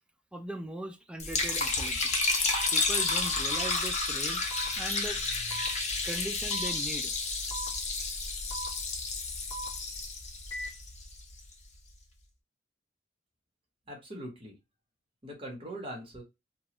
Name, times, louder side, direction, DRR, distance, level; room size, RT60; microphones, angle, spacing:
voice 1, 0.3-2.0 2.7-4.4 4.7-5.2 6.0-7.1, right 1 dB, 5° right, 0.4 m, -39 dB
Liquid, 1.2-11.4, left 3 dB, 40° left, 0.8 m, -31 dB
sound 1, 2.5-2.7 3.5-3.7 4.5-4.7 5.5-5.7 6.5-6.7 7.5-7.7 8.5-8.7 9.5-9.7 10.5-10.7, right 2 dB, 10° left, 1.5 m, -38 dB
voice 2, 13.9-14.5 15.2-16.2, right 1 dB, 30° right, 1.1 m, -41 dB
3.0 x 2.3 x 2.9 m
head